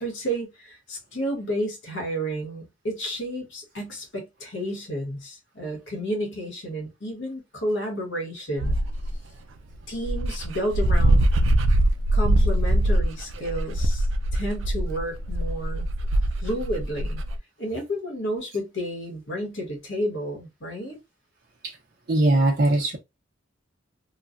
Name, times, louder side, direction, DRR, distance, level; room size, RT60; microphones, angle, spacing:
voice 1, 0.0-8.8 9.9-11.3 12.1-14.1 14.3-15.9 16.4-17.2 17.6-21.0, equal, 60° left, 1.3 m, -31 dB
Dog, 8.6-9.1 9.7-9.8 10.0-17.4, right 1 dB, 70° right, 0.4 m, -22 dB
voice 2, 22.1-23.0, right 1 dB, 50° right, 0.8 m, -20 dB
3.1 x 2.3 x 2.5 m
head